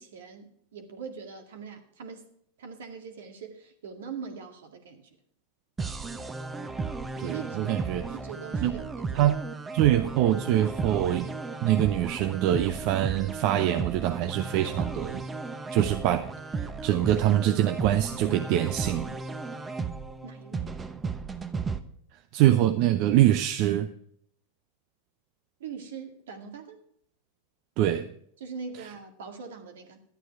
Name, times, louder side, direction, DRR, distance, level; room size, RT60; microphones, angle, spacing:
voice 1, 0.0-2.3 2.6-5.1 7.2-7.7 8.1-9.3 20.2-20.8 25.6-26.8 28.4-30.0, right 5 dB, 80° right, 5 dB, 2.0 m, -42 dB
sound 1, 5.8-21.8, right 4 dB, 20° right, 1.0 m, -35 dB
voice 2, 7.2-8.0 8.6-8.7 9.1-9.4 9.7-11.3 11.6-15.2 15.7-16.3 16.6-19.2 22.3-23.9 27.8-28.1, right 12 dB, 55° right, 9 dB, 0.7 m, -24 dB
11.5 x 9.2 x 4.7 m, 0.68 s
hypercardioid pair, 105°, 0 cm